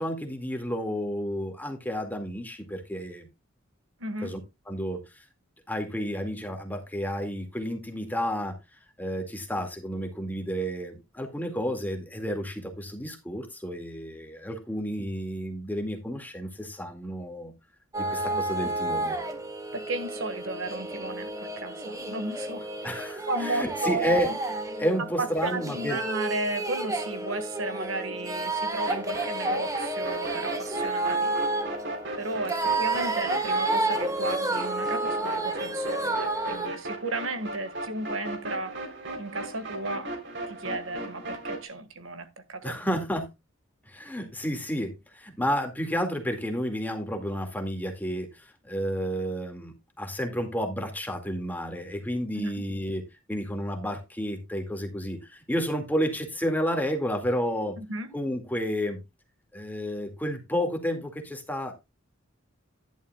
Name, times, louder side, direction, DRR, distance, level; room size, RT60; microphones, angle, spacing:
voice 1, 0.0-3.3 4.2-4.4 4.7-5.2 5.7-8.6 9.0-17.5 18.0-19.2 22.8-24.3 24.8-26.0 42.6-43.3 43.9-57.8 58.1-59.0 59.5-61.7, equal, 10° left, 2.1 m, -31 dB
voice 2, 4.0-4.4 18.3-18.7 19.7-23.0 23.3-24.4 25.0-31.3 32.2-38.8 39.2-40.1 40.5-43.0 52.3-52.6 57.8-58.1, right 2 dB, 75° right, 1.7 m, -34 dB
sound 1, 17.9-36.7, right 2 dB, 15° right, 1.5 m, -30 dB
sound 2, 28.9-41.7, right 2 dB, 60° right, 3.6 m, -37 dB
11.5 x 11.0 x 2.3 m
head